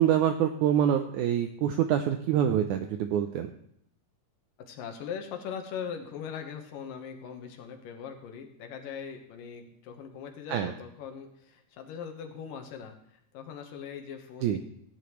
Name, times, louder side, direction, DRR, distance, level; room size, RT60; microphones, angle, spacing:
voice 1, 0.0-3.5 10.5-10.7 14.4-14.6, right 10 dB, 85° right, 7 dB, 1.7 m, -25 dB
voice 2, 4.6-13.0 13.3-14.6, left 7 dB, 75° left, 4 dB, 2.8 m, -40 dB
17.0 x 9.9 x 3.1 m, 0.72 s
omnidirectional pair, 4.1 m